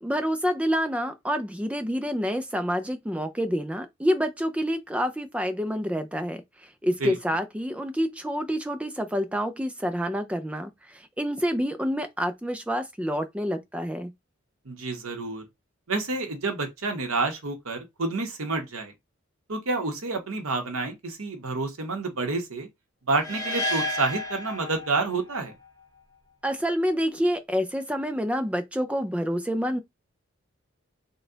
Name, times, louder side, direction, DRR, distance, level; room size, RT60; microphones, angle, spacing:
voice 1, 0.0-14.1 26.4-29.8, equal, 5° right, 0.4 m, -28 dB
voice 2, 14.6-15.4 15.9-18.9 19.5-22.7 23.1-25.5, right 3 dB, 90° right, 1.1 m, -29 dB
sound 1, 23.2-25.3, left 1 dB, 15° left, 0.9 m, -31 dB
4.1 x 2.3 x 3.9 m
head